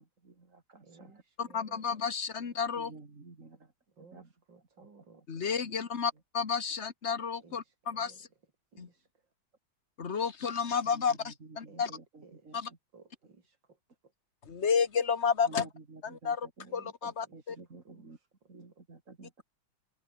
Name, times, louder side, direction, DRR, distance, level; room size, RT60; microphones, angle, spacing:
voice 1, 0.0-1.2 2.7-3.7 4.0-4.3 4.8-4.9 10.9-12.8 15.4-16.7 17.0-18.2 18.5-19.4, right 3 dB, 40° right, 3.1 m, -52 dB
voice 2, 0.8-1.8 2.4-2.5 4.0-5.4 5.8-6.0 7.4-8.2 8.7-9.1 11.7-11.9 12.2-13.8 16.7-16.9 17.2-18.3 18.7-18.8, right 4 dB, 60° right, 4.2 m, -59 dB
voice 3, 1.4-2.9 5.3-8.3 8.8-8.9 10.0-11.9 12.5-12.7 14.5-15.7 16.0-17.6, left 6 dB, 35° left, 1.7 m, -31 dB
open air
omnidirectional pair, 2.2 m